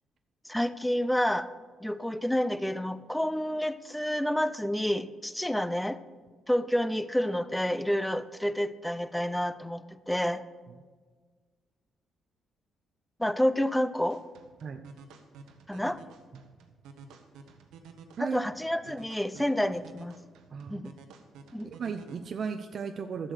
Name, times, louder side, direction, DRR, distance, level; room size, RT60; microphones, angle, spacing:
voice 1, 0.4-1.5 1.8-6.0 6.5-10.4 13.2-14.2 15.7-16.0 18.2-20.1 20.7-20.9 21.5-21.7, equal, 5° left, 14 dB, 0.6 m, -29 dB
sound 1, 14.1-22.1, right 5 dB, 85° right, 1.2 m, -52 dB
voice 2, 20.5-20.9 21.6-23.3, right 6 dB, 55° right, 6 dB, 0.6 m, -35 dB
12.5 x 7.8 x 6.5 m, 1.5 s
cardioid pair, 90°, 0 cm